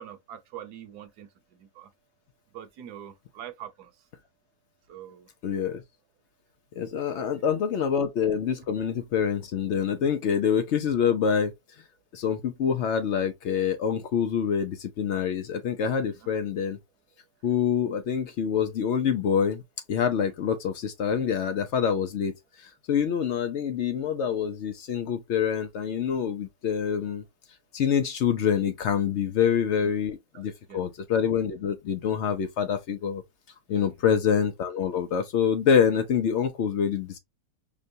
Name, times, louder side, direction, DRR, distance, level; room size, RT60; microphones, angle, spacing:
voice 1, 0.0-1.9 2.5-3.9 4.9-5.3 7.1-7.5 16.1-16.2 29.8-29.9 30.3-30.8 33.7-34.0, right 10 dB, 70° right, 1.2 m, -44 dB
voice 2, 5.4-5.8 6.8-11.5 12.1-16.8 17.4-19.6 19.9-22.3 22.6-27.2 27.7-33.2 33.7-37.2, left 7 dB, 85° left, 0.6 m, -26 dB
5.2 x 2.2 x 2.6 m
omnidirectional pair, 1.9 m